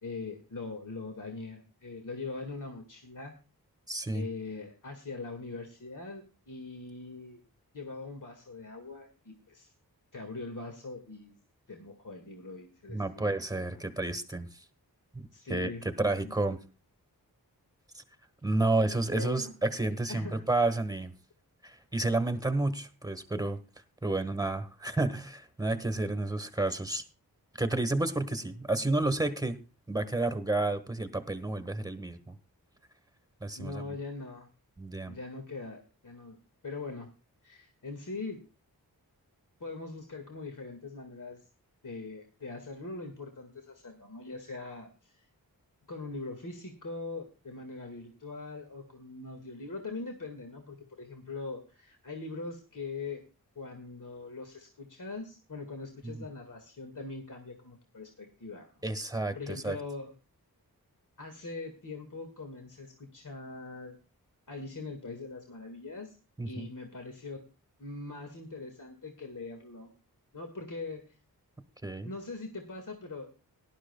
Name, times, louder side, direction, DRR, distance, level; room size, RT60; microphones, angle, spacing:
voice 1, 0.0-3.3 4.1-7.4 7.7-9.7 10.1-11.4 11.7-13.3 13.7-13.9 15.3-16.6 18.8-19.5 20.1-20.4 33.6-34.5 35.1-36.4 36.6-37.1 37.4-38.4 39.6-41.5 41.8-45.3 45.9-53.2 53.6-58.8 59.3-60.1 61.2-64.0 64.5-66.1 66.5-67.4 67.8-69.9 70.3-71.0 72.0-73.3, left 3 dB, 55° left, 4 dB, 1.9 m, -42 dB
voice 2, 3.9-4.3 12.9-14.5 15.1-16.6 17.9-18.0 18.4-21.1 21.6-23.6 24.0-27.0 27.6-29.6 29.9-32.3 33.4-34.0 34.8-35.1 56.0-56.2 58.8-59.8 66.4-66.7 71.8-72.1, right 2 dB, 10° right, 9 dB, 1.4 m, -31 dB
18.0 x 11.5 x 2.3 m, 0.32 s
wide cardioid pair, 70°, 38 cm